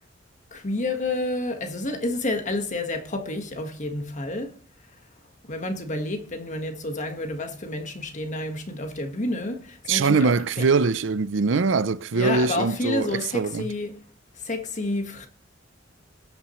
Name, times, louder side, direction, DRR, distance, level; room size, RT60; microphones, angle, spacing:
voice 1, 0.5-5.1 5.4-10.7 12.1-14.0 14.3-15.3, left 2 dB, 40° left, 1.5 m, -30 dB
voice 2, 9.9-13.7, right 4 dB, 70° right, 0.6 m, -22 dB
20.0 x 8.7 x 3.1 m
head